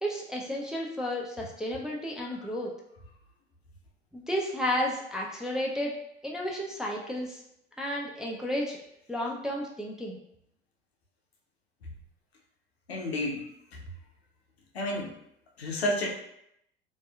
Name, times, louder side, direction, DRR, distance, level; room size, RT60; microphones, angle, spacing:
voice 1, 0.0-2.7 4.1-6.0 6.2-7.4 7.8-8.8 9.1-10.2, equal, ahead, -2 dB, 0.3 m, -32 dB
voice 2, 12.9-13.5 14.7-15.1 15.6-16.1, left 1 dB, 90° left, 0 dB, 0.5 m, -30 dB
2.7 x 2.3 x 2.2 m, 0.76 s
figure-of-eight pair, 65°, 30 cm